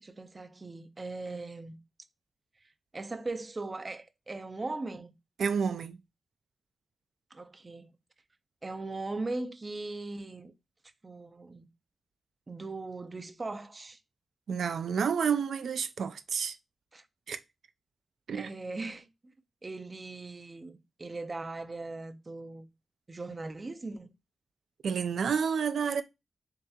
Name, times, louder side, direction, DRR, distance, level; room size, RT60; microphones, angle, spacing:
voice 1, 0.0-1.8 2.9-5.1 7.3-7.9 8.6-10.5 11.0-11.7 12.5-14.0 16.9-17.1 18.3-19.3 19.6-22.7 23.1-24.1, right 3 dB, 25° right, 0.5 m, -39 dB
voice 2, 5.4-6.0 14.5-16.6 17.3-17.4 18.3-18.5 24.8-26.0, right 6 dB, 85° right, 0.4 m, -29 dB
7.2 x 2.8 x 2.3 m
wide cardioid pair, 180°, 0 cm